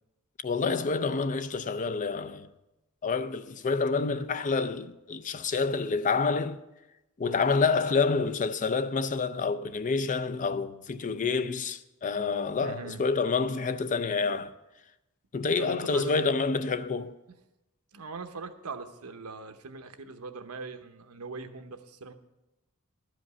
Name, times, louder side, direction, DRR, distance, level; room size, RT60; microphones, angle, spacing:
voice 1, 0.4-2.5 3.0-6.6 7.2-14.5 15.3-17.1, left 4 dB, 35° left, 0.4 m, -28 dB
voice 2, 12.6-13.0 15.6-16.1 17.9-22.1, right 4 dB, 80° right, 0.9 m, -41 dB
12.0 x 5.2 x 8.3 m
head